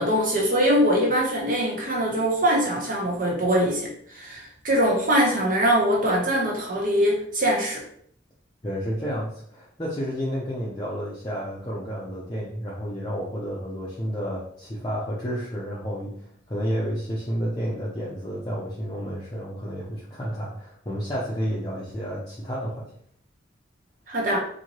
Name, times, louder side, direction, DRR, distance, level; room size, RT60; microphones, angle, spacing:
voice 1, 0.0-7.8 24.1-24.4, equal, 45° right, -2 dB, 1.1 m, -22 dB
voice 2, 8.6-22.9, equal, 20° left, -6 dB, 0.6 m, -31 dB
4.3 x 2.8 x 3.0 m, 0.63 s
head